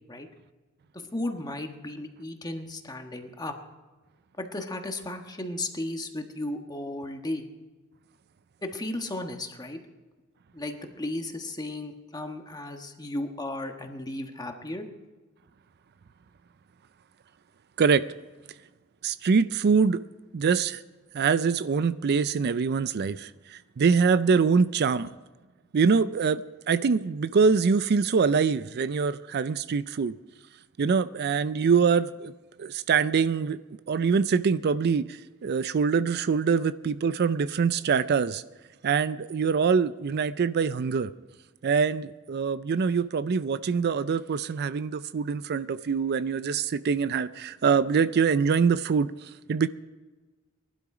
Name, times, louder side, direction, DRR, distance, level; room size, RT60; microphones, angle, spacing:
voice 1, 0.9-3.5 4.4-7.4 8.6-9.8 10.5-14.9, left 1 dB, 20° left, 1.4 m, -35 dB
voice 2, 19.0-20.0 20.3-20.8 21.1-25.1 25.7-30.1 30.8-32.3 32.6-33.6 33.9-38.4 38.8-41.1 41.6-49.7, right 5 dB, 50° right, 0.4 m, -24 dB
19.0 x 12.0 x 4.9 m
head